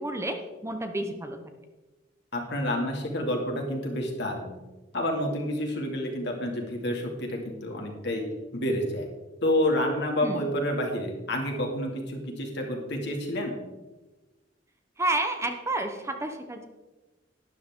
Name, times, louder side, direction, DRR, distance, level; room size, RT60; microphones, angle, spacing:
voice 1, 0.0-1.4 10.2-10.5 15.0-16.7, right 2 dB, 15° right, 6 dB, 0.8 m, -30 dB
voice 2, 2.3-4.5 4.9-8.2 8.5-9.1 9.4-13.5, left 1 dB, 65° left, 1 dB, 2.4 m, -29 dB
12.0 x 10.5 x 3.7 m, 1.2 s
head